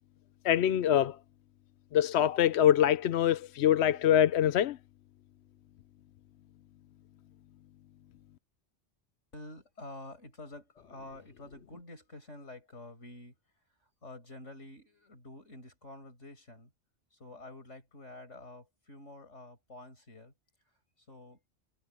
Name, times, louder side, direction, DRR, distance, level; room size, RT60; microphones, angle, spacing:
voice 1, 0.4-1.2 1.9-4.8, left 10 dB, 70° left, 0.9 m, -24 dB
voice 2, 9.3-13.4 13.8-16.7 17.1-20.3 21.0-21.4, left 2 dB, 90° left, 6.3 m, -49 dB
omnidirectional pair, 1.2 m